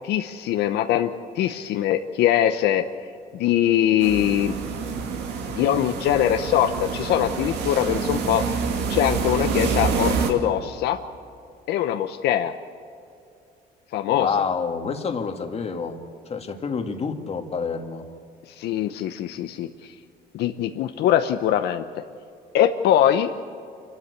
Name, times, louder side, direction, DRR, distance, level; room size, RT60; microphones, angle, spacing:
voice 1, 0.0-2.8 3.3-4.5 5.5-8.4 8.9-11.0 11.7-12.5 13.9-14.3 18.6-19.9 20.3-21.8 22.5-23.3, left 11 dB, 80° left, 7 dB, 0.8 m, -22 dB
sound 1, 4.0-10.3, right 5 dB, 85° right, 2.4 m, -27 dB
voice 2, 14.1-16.0 16.3-18.1, left 5 dB, 35° left, 5 dB, 1.9 m, -28 dB
27.0 x 12.5 x 8.4 m, 2.4 s
cardioid pair, 110°, 17 cm